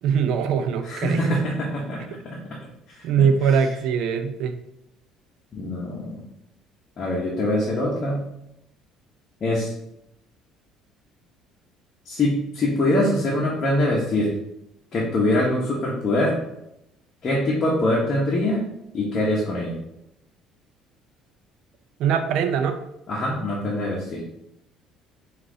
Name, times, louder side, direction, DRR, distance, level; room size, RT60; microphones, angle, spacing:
voice 1, 0.0-1.4 3.0-4.6 22.0-22.8, right 7 dB, 65° right, 8 dB, 0.5 m, -22 dB
voice 2, 0.9-2.4 3.0-3.1 5.5-6.2 7.0-8.2 9.4-9.7 12.1-14.3 14.9-16.3 17.2-18.6 18.9-19.7 23.1-24.2, left 1 dB, 35° left, -4 dB, 0.9 m, -23 dB
5.5 x 2.5 x 3.8 m, 0.83 s
cardioid pair, 145°, 0 cm